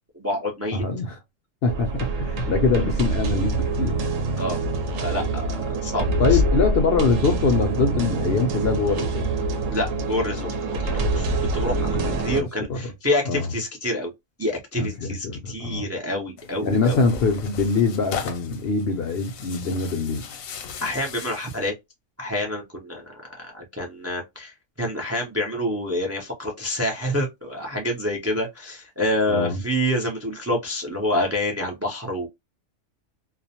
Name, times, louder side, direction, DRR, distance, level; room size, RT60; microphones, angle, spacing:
voice 1, 0.1-0.8 4.4-4.6 5.0-6.4 9.7-14.1 14.4-17.0 20.8-21.7 22.2-32.3, left 1 dB, 25° right, 0.3 m, -27 dB
voice 2, 0.7-1.2 1.6-4.0 6.2-9.3 11.9-12.9 13.2-13.5 14.8-15.9 16.6-20.2 29.3-29.6, left 4 dB, 65° left, 0.6 m, -24 dB
sound 1, 1.7-12.4, right 2 dB, 75° right, 0.9 m, -25 dB
Tearing, 16.4-21.7, left 6 dB, 80° left, 1.0 m, -37 dB
2.4 x 2.0 x 2.7 m
omnidirectional pair, 1.4 m